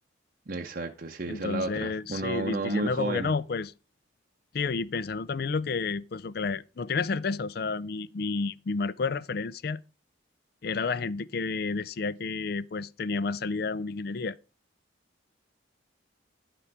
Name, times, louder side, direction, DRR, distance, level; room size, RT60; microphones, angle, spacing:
voice 1, 0.5-3.3, right 2 dB, 45° right, 0.7 m, -32 dB
voice 2, 1.3-3.7 4.5-9.8 10.6-14.4, left 4 dB, 50° left, 0.4 m, -31 dB
11.0 x 6.0 x 4.7 m
head